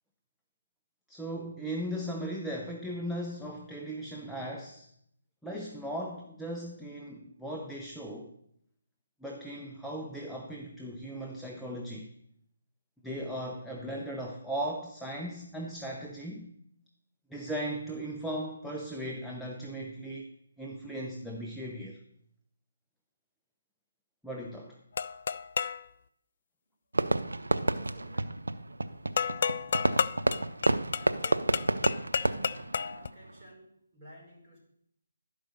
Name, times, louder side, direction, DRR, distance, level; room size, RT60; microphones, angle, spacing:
voice 1, 1.1-4.9 5.4-8.3 9.2-12.1 13.0-16.5 17.3-20.3 20.6-22.0 24.2-24.8, right 1 dB, ahead, -2 dB, 0.7 m, -37 dB
sound 1, 25.0-25.9 29.2-33.1, left 6 dB, 50° left, 0.3 m, -31 dB
Fireworks, 26.9-33.5, right 2 dB, 85° right, 0.6 m, -30 dB
voice 2, 27.8-28.5 30.6-31.5 32.9-34.6, right 1 dB, 20° right, -6 dB, 4.5 m, -54 dB
12.0 x 5.1 x 6.5 m, 0.74 s
figure-of-eight pair, 155°, 0 cm